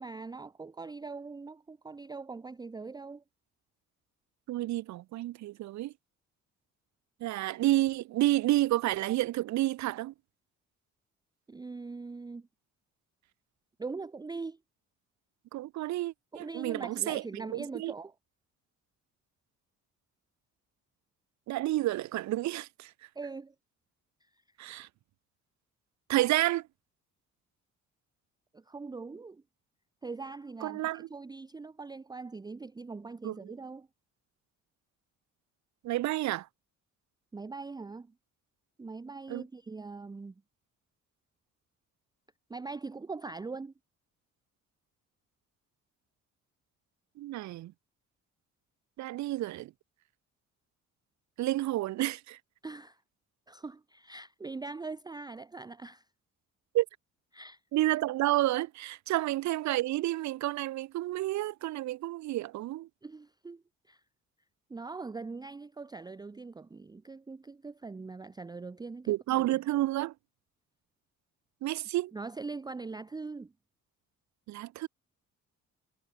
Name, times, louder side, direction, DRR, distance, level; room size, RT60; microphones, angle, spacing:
voice 1, 0.0-3.2 11.5-12.5 13.8-14.6 16.3-18.1 23.2-23.5 24.2-24.3 28.5-29.4 30.0-33.9 37.3-38.1 38.8-40.3 42.5-43.7 52.6-53.0 53.5-56.1 57.3-57.6 63.0-64.0 64.7-69.4 72.1-73.5, right 4 dB, 15° right, 0.5 m, -42 dB
voice 2, 4.5-5.9 7.2-10.1 15.5-17.9 21.5-22.9 24.6-24.9 26.1-26.6 30.6-31.1 33.2-33.4 35.8-36.5 39.3-39.4 47.2-47.7 49.0-49.7 51.4-52.4 56.7-56.9 57.7-62.9 69.1-70.1 71.6-72.1 74.5-74.9, right 16 dB, 70° right, 0.6 m, -30 dB
cardioid pair, 90°, 30 cm